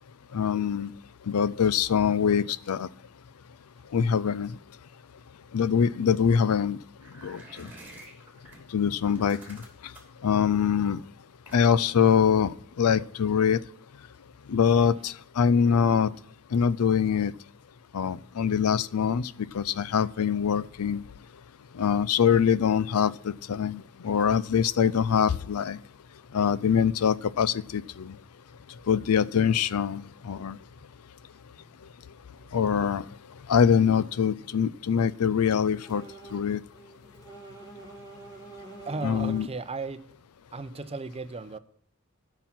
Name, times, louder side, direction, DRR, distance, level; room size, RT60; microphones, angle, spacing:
voice 1, 0.3-0.9 1.3-2.9 3.9-4.5 5.5-6.8 7.2-7.7 8.7-9.6 10.2-11.0 11.5-13.6 14.5-16.1 16.5-17.3 17.9-21.0 21.8-25.8 26.3-28.1 28.9-30.6 32.5-33.0 33.5-36.0 36.3-36.6 39.0-39.5, left 7 dB, 90° left, 0.5 m, -24 dB
sound 1, 7.0-8.6 9.1-10.2 11.4-11.9, right 2 dB, 10° right, 2.7 m, -48 dB
voice 2, 31.5-31.9 38.8-40.0 40.5-41.6, right 3 dB, 30° right, 0.6 m, -36 dB
sound 2, 35.7-36.5 36.7-39.6, right 3 dB, 20° left, 2.6 m, -46 dB
11.5 x 5.9 x 5.9 m
head